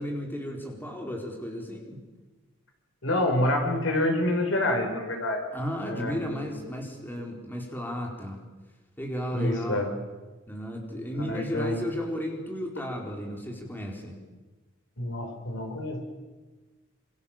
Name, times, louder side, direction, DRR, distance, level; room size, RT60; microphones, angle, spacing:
voice 1, 0.0-2.0 5.5-8.4 9.0-9.8 10.5-14.2, equal, 10° left, 0 dB, 4.6 m, -34 dB
voice 2, 3.0-5.4 5.9-6.2 9.3-9.9 11.3-11.8 15.0-16.0, left 1 dB, 70° left, 5 dB, 4.9 m, -27 dB
28.0 x 27.0 x 7.5 m, 1.2 s
head